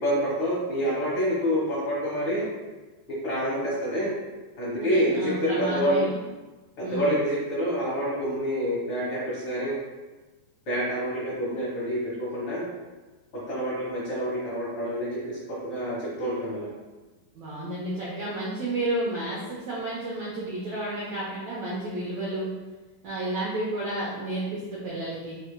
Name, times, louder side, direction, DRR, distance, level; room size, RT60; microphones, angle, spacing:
voice 1, 0.0-2.5 3.1-4.1 4.6-6.1 6.8-9.7 10.7-12.7 13.5-16.7, equal, 50° left, -8 dB, 1.8 m, -27 dB
voice 2, 4.8-6.2 6.8-7.1 17.3-22.5 23.0-25.3, right 1 dB, 70° right, -7 dB, 1.7 m, -31 dB
4.9 x 4.7 x 2.2 m, 1.2 s
omnidirectional pair, 4.0 m